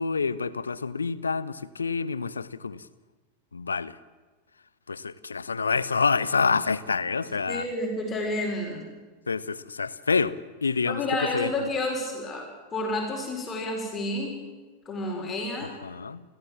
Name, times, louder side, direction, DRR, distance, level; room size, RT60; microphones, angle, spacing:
voice 1, 0.0-2.9 3.5-3.9 4.9-7.7 9.3-11.0 11.3-11.7 15.6-16.2, left 5 dB, 75° left, 18 dB, 0.8 m, -27 dB
voice 2, 7.5-8.9 10.9-12.5 12.7-14.4 14.8-15.7, left 1 dB, 25° left, 1 dB, 4.9 m, -30 dB
30.0 x 14.5 x 7.5 m, 1.3 s
figure-of-eight pair, 90°, 0 cm